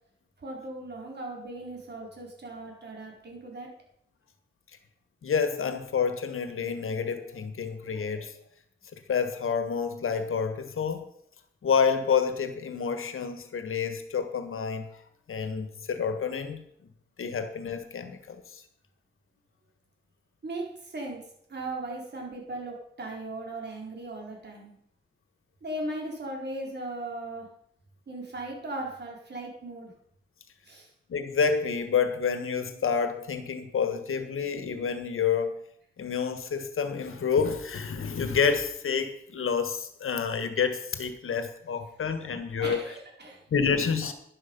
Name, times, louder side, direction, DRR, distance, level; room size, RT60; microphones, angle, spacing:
voice 1, 0.4-3.7 20.4-21.2 21.5-24.7 25.6-27.5 28.1-29.9 30.7-30.9 42.2-43.4, right 2 dB, 55° right, -1 dB, 4.3 m, -38 dB
voice 2, 5.2-8.3 8.9-11.0 11.6-14.9 15.3-16.7 17.2-18.6 31.1-35.6 36.0-42.8 43.5-44.1, left 6 dB, 80° left, 9 dB, 1.5 m, -28 dB
11.5 x 11.5 x 5.4 m, 0.71 s
wide cardioid pair, 95°, 21 cm